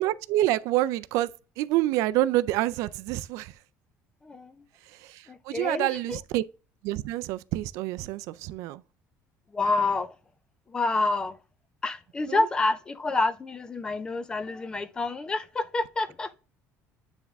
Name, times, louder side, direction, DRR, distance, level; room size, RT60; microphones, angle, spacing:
voice 1, 0.0-1.3 1.6-3.5 4.9-6.4 6.8-8.8 12.3-12.5, right 15 dB, 65° right, 0.3 m, -27 dB
voice 2, 4.2-4.6 5.3-6.2 9.5-10.1 10.7-11.4 11.8-16.4, left 3 dB, 15° left, 0.4 m, -28 dB
9.1 x 3.5 x 3.5 m
cardioid pair, 180°, 6 cm